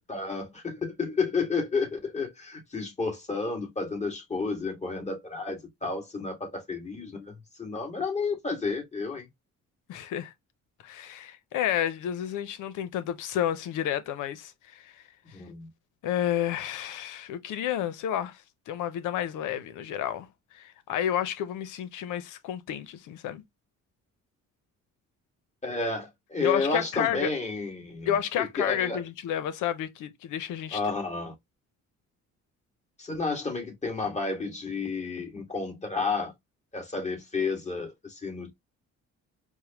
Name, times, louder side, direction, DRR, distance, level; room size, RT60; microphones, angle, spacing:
voice 1, 0.0-7.3 7.6-9.3 15.3-15.7 25.6-28.1 28.4-29.0 30.7-31.3 33.0-36.3 36.7-38.5, left 4 dB, 20° left, 1.9 m, -31 dB
voice 2, 9.9-10.3 10.8-14.9 16.0-20.3 20.5-23.4 26.4-27.3 28.1-30.8, left 10 dB, 85° left, 0.7 m, -30 dB
4.7 x 2.1 x 2.9 m
cardioid pair, 90°, 30 cm